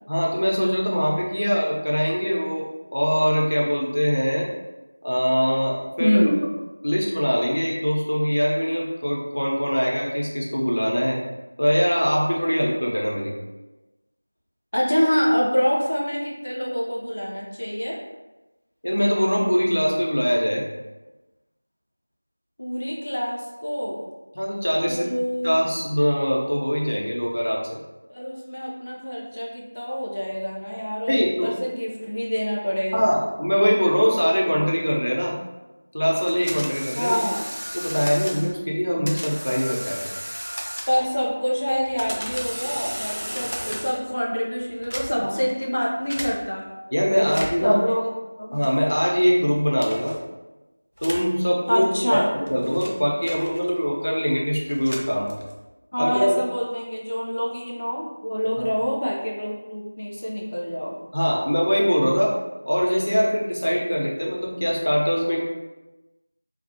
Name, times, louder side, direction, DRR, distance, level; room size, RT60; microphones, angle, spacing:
voice 1, 0.1-4.5 5.0-6.2 6.8-11.2 11.6-13.3 18.8-20.7 24.3-25.1 25.4-27.8 31.1-31.6 32.9-35.4 35.9-37.1 37.7-40.1 46.9-47.8 48.5-50.2 51.0-55.3 56.0-56.4 58.6-58.7 61.1-62.3 62.7-65.4, equal, 80° left, -2 dB, 0.6 m, -22 dB
voice 2, 6.0-6.4 14.7-18.0 22.6-24.1 24.8-25.5 28.1-33.1 37.0-37.5 40.9-46.7 47.2-47.3 47.6-48.1 48.4-48.6 51.7-52.3 55.9-61.0, equal, 40° left, -3 dB, 0.4 m, -26 dB
sound 1, 36.3-38.5 39.1-41.2 41.7-44.1 44.7-45.4 46.1-46.3 47.2-47.7 48.6-49.0 49.8-50.2 51.0-51.3 52.1-53.9 54.6-55.7, equal, 75° right, 0.5 m, -34 dB
2.4 x 2.0 x 2.7 m, 1.1 s
figure-of-eight pair, 175°, 0 cm